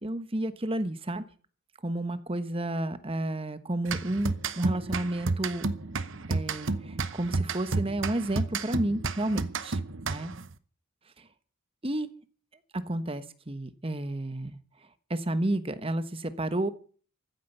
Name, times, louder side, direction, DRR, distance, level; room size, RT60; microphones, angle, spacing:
voice 1, 0.0-1.2 1.8-5.6 6.3-9.8 10.1-10.3 11.8-12.1 12.7-14.6 15.1-16.7, right 1 dB, 25° right, 12 dB, 1.2 m, -31 dB
sound 1, 3.9-10.5, right 3 dB, 60° right, 0.9 m, -32 dB
14.5 x 9.8 x 8.1 m, 0.42 s
head